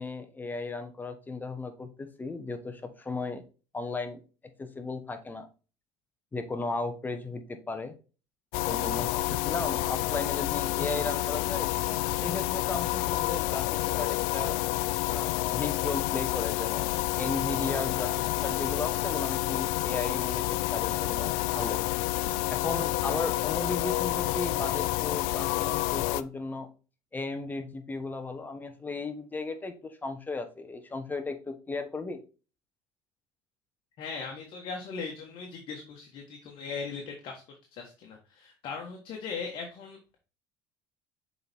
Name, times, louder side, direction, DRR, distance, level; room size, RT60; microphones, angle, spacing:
voice 1, 0.0-3.4 3.7-4.2 4.6-5.5 6.3-7.9 8.6-11.7 12.1-13.7 14.0-14.6 15.1-21.8 22.5-26.7 27.1-32.2, left 3 dB, 20° left, 7 dB, 1.0 m, -35 dB
sound 1, 8.5-26.2, left 17 dB, 85° left, 0.4 m, -29 dB
voice 2, 34.0-37.4 37.7-40.2, left 5 dB, 55° left, 2 dB, 1.4 m, -39 dB
6.8 x 4.1 x 3.5 m, 0.34 s
supercardioid pair, 105°, 10 cm